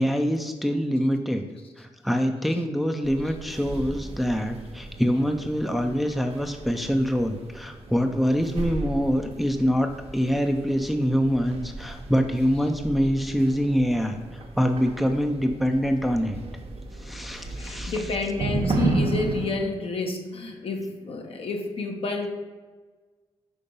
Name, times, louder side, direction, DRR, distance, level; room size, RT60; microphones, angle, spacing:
voice 1, 0.0-1.5 1.8-16.4 16.9-18.1, equal, ahead, 5 dB, 0.6 m, -25 dB
sound 1, 3.0-19.5, right 2 dB, 65° right, 0.9 m, -34 dB
voice 2, 17.5-22.3, left 3 dB, 60° left, 3 dB, 1.0 m, -29 dB
5.4 x 3.7 x 5.3 m, 1.4 s
cardioid pair, 65°, 11 cm